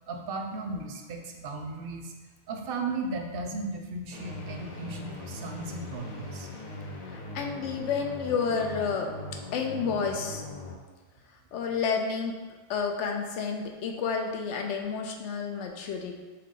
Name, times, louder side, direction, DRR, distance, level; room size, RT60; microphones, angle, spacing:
voice 1, 0.1-2.1 2.5-6.5, right 3 dB, 65° right, 3 dB, 0.7 m, -36 dB
sound 1, 4.1-10.8, left 2 dB, 50° left, 0.6 m, -40 dB
voice 2, 7.1-9.1 9.5-10.4 11.5-12.3 12.7-16.2, left 5 dB, 80° left, 3 dB, 0.9 m, -30 dB
4.7 x 2.3 x 3.7 m, 1.3 s
omnidirectional pair, 1.2 m